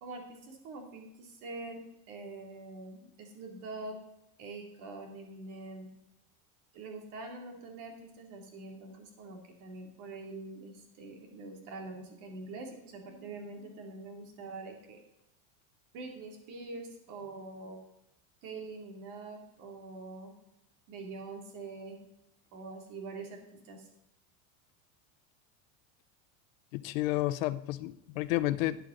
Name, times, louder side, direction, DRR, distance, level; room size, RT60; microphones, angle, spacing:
voice 1, 0.0-4.0 4.4-5.9 6.7-15.0 15.9-17.8 18.4-20.3 20.9-22.0 22.5-23.9, right 3 dB, 50° right, 2 dB, 2.8 m, -44 dB
voice 2, 26.7-28.8, left 16 dB, 70° left, 13 dB, 0.8 m, -31 dB
12.5 x 9.2 x 3.9 m, 0.86 s
supercardioid pair, 160°, 41 cm